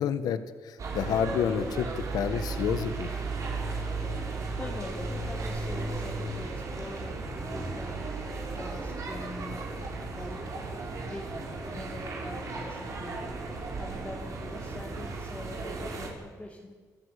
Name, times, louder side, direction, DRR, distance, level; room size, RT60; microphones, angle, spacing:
voice 1, 0.0-1.9 2.1-3.1, left 8 dB, 75° left, 12 dB, 1.6 m, -29 dB
sound 1, 0.8-16.1, right 3 dB, 55° right, 5.7 m, -35 dB
voice 2, 4.6-8.0 8.5-10.7 11.0-13.3 13.8-16.7, left 2 dB, 15° left, -2 dB, 3.3 m, -43 dB
27.5 x 15.0 x 8.5 m, 1.5 s
cardioid pair, 105°, 7 cm